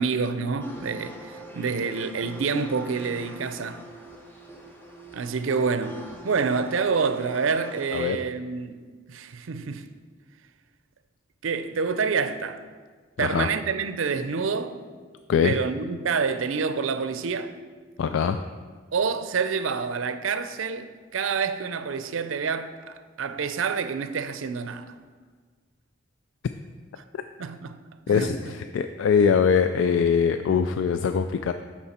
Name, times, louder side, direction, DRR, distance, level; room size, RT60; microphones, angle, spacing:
voice 1, 0.0-3.8 5.1-8.8 9.1-9.9 11.4-12.6 13.2-14.8 15.4-17.5 18.9-24.9 27.4-27.8 28.1-28.6, right 5 dB, 90° right, 0.5 m, -27 dB
sound 1, 0.6-8.1, right 1 dB, 10° left, 0.7 m, -44 dB
voice 2, 13.2-13.5 15.3-15.6 18.0-18.4 27.1-27.2 28.1-31.5, left 6 dB, 75° left, 0.3 m, -22 dB
12.5 x 4.5 x 4.3 m
head